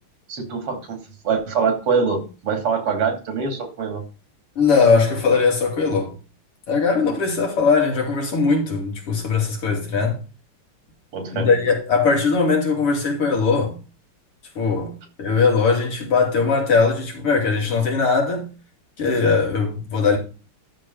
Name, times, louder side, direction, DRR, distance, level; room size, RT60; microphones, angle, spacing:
voice 1, 0.3-4.0 11.1-11.5, right 5 dB, 85° right, 3.5 m, -24 dB
voice 2, 4.6-6.1 6.7-10.2 11.3-13.8 14.6-18.5 19.0-20.2, left 4 dB, 85° left, 3.9 m, -20 dB
12.5 x 5.2 x 5.4 m
omnidirectional pair, 2.4 m